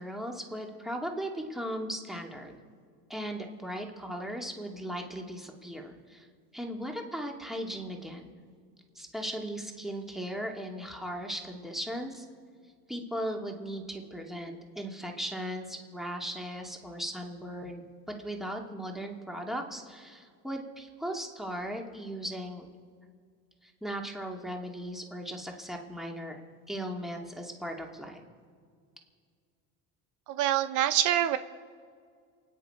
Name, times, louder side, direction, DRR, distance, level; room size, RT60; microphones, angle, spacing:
voice 1, 0.0-2.6 3.1-6.3 6.5-8.3 9.0-12.3 12.9-22.7 23.6-26.4 26.7-28.2, equal, ahead, 1 dB, 2.5 m, -37 dB
voice 2, 30.3-31.4, right 12 dB, 65° right, 11 dB, 0.8 m, -25 dB
29.0 x 9.9 x 5.0 m, 2.1 s
supercardioid pair, 105°, 32 cm